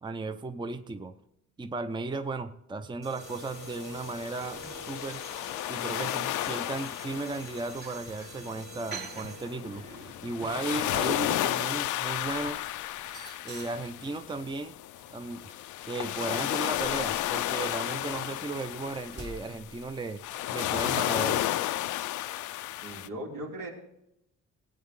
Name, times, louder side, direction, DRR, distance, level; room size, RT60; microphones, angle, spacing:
voice 1, 0.0-1.1 1.6-5.2 5.7-9.8 10.2-12.6 13.4-14.8 15.1-15.5 15.8-20.2 20.5-21.5, right 3 dB, 15° right, 9 dB, 0.6 m, -35 dB
sound 1, 3.0-9.8, right 2 dB, 65° right, 3.4 m, -48 dB
sound 2, 3.2-23.1, left 14 dB, 75° left, 0.5 m, -33 dB
sound 3, 4.5-5.2 5.5-8.4 8.9-14.6 15.0-20.2 21.2-21.5, right 4 dB, 35° right, 3.5 m, -49 dB
voice 2, 22.7-23.7, right 1 dB, 80° right, -2 dB, 3.5 m, -39 dB
17.0 x 8.7 x 3.7 m, 0.81 s
cardioid pair, 90°, 30 cm